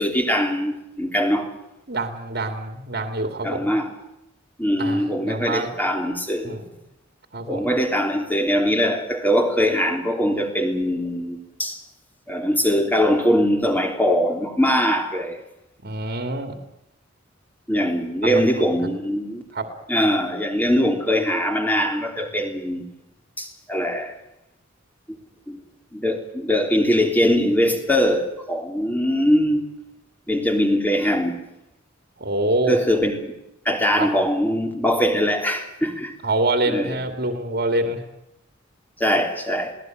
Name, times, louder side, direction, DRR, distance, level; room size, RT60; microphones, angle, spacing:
voice 1, 0.0-1.5 3.4-3.9 4.6-6.6 7.5-11.8 12.3-15.4 17.7-19.4 19.9-22.9 23.4-24.1 25.1-25.2 25.5-25.6 25.9-29.7 30.3-31.4 32.7-33.2 33.6-36.1 36.7-37.0 39.0-39.7, equal, 10° left, 3.3 m, -22 dB
voice 2, 1.9-3.7 4.8-5.7 6.4-6.6 7.3-7.7 15.8-16.6 18.2-18.5 19.5-19.7 32.2-32.8 34.0-34.1 36.2-38.0, right 2 dB, 50° right, 2.6 m, -25 dB
21.5 x 18.0 x 9.1 m
head